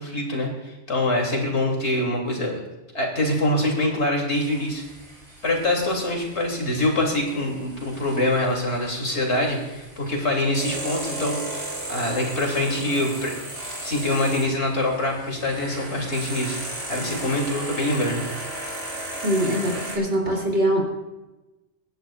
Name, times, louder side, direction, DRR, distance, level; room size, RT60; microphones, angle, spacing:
voice 1, 0.0-2.6 2.9-4.8 5.4-13.3 13.8-16.6 16.9-18.2, left 1 dB, 75° left, 0 dB, 3.1 m, -24 dB
sound 1, 4.3-20.0, right 1 dB, 30° right, 2.9 m, -36 dB
voice 2, 19.2-20.8, right 1 dB, 80° right, -2 dB, 3.4 m, -22 dB
25.0 x 10.5 x 2.4 m, 1.1 s
omnidirectional pair, 1.2 m